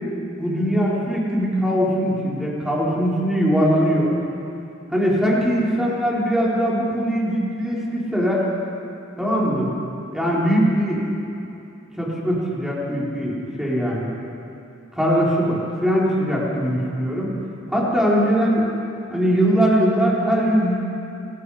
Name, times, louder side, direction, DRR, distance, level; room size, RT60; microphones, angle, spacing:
voice 1, 0.4-4.2 4.9-8.4 9.2-9.7 10.1-11.1 12.0-14.1 14.9-17.3 17.7-18.7 19.1-20.9, equal, ahead, -6 dB, 4.5 m, -21 dB
28.0 x 19.0 x 5.1 m, 2.9 s
head